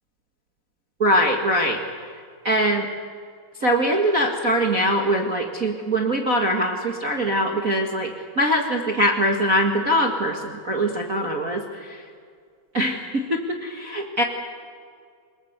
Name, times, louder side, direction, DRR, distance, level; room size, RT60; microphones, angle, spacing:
voice 1, 1.0-1.8 2.4-2.9 3.6-11.6 12.7-14.2, equal, 45° right, 2 dB, 1.0 m, -22 dB
28.0 x 20.0 x 8.0 m, 2.1 s
omnidirectional pair, 4.4 m